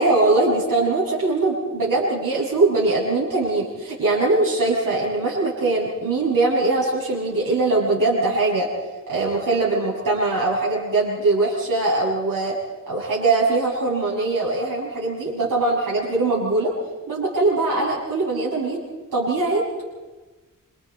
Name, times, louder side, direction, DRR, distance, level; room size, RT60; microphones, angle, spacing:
voice 1, 0.0-8.7 9.1-12.5 12.9-16.7 17.1-18.8 19.1-19.6, right 2 dB, 70° right, -6 dB, 7.0 m, -21 dB
27.5 x 27.0 x 4.3 m, 1.2 s
wide cardioid pair, 105°, 34 cm